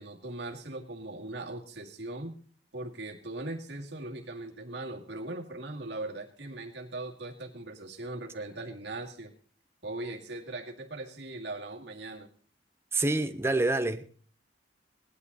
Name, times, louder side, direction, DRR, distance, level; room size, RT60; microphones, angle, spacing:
voice 1, 0.0-2.4 2.7-9.3 9.8-12.3, right 2 dB, 65° right, 0 dB, 2.2 m, -39 dB
voice 2, 12.9-14.1, right 2 dB, 15° right, 8 dB, 0.8 m, -27 dB
18.0 x 11.5 x 4.1 m, 0.44 s
head